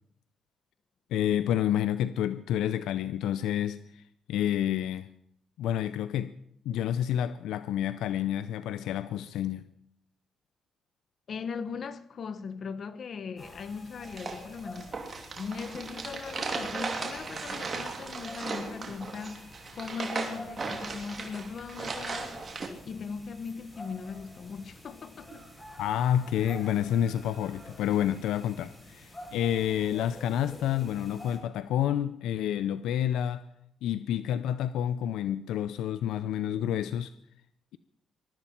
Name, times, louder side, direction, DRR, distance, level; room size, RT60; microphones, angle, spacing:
voice 1, 1.1-4.0 4.3-5.1 5.6-6.3 6.7-9.6 25.8-33.4 33.8-37.1, left 10 dB, 85° left, 0.5 m, -29 dB
voice 2, 11.3-14.9 15.4-22.4 22.8-25.4, left 5 dB, 55° left, 1.1 m, -39 dB
sound 1, 13.4-31.4, left 1 dB, 15° left, 8.0 m, -48 dB
sound 2, 14.0-22.7, right 4 dB, 35° right, 2.7 m, -37 dB
22.5 x 12.5 x 4.4 m
cardioid pair, 90°, 0 cm